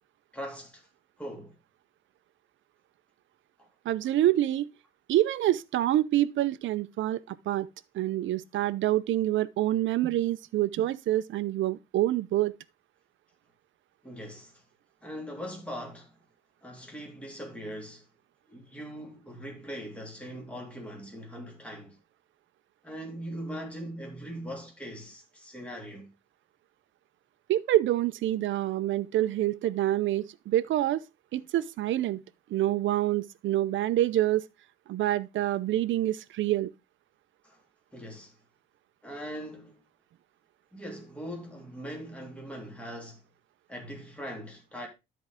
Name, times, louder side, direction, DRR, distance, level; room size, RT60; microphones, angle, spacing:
voice 1, 0.3-0.9 1.2-1.6 3.6-3.7 14.0-14.6 15.0-16.1 16.6-18.1 18.5-22.0 22.8-26.1 37.4-37.6 37.9-38.4 39.0-39.8 40.7-43.2 43.7-44.9, equal, 5° left, 3.1 m, -41 dB
voice 2, 3.8-4.7 5.1-7.7 7.9-12.5 27.5-31.0 31.3-32.2 32.5-34.4 34.9-36.7, right 14 dB, 75° right, 0.7 m, -26 dB
13.0 x 4.7 x 3.6 m
cardioid pair, 90°, 20 cm